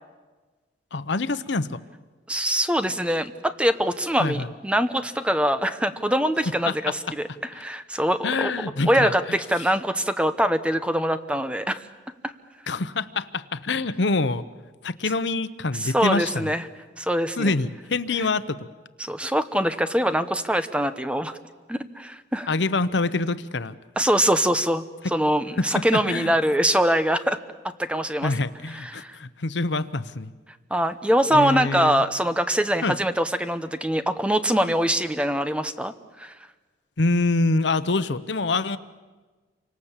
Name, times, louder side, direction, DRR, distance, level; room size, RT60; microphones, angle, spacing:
voice 1, 0.9-1.8 4.2-4.5 6.7-6.9 7.5-7.6 8.2-9.6 12.7-14.5 14.8-16.5 17.4-18.7 22.5-23.7 25.6-26.3 28.2-30.3 31.3-32.0 32.8-33.0 37.0-38.8, left 3 dB, 75° left, 14 dB, 0.9 m, -26 dB
voice 2, 2.3-8.5 8.9-11.8 12.2-12.3 15.8-16.6 17.0-17.5 19.0-21.3 21.7-22.5 24.0-24.8 25.1-27.4 27.8-28.3 28.7-29.1 30.7-35.9 36.2-36.3, equal, 5° right, 10 dB, 0.9 m, -23 dB
28.5 x 25.5 x 7.4 m, 1.3 s
head